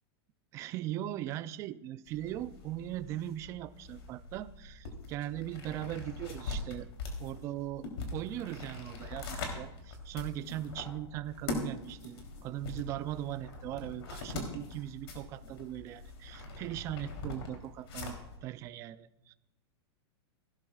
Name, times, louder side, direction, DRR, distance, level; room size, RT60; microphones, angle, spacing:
voice 1, 0.5-6.9 7.2-19.3, right 13 dB, 20° right, 14 dB, 0.3 m, -39 dB
sound 1, 2.1-18.4, left 3 dB, 70° left, 3.2 m, -42 dB
18.0 x 12.5 x 2.4 m, 0.92 s
supercardioid pair, 160°, 14 cm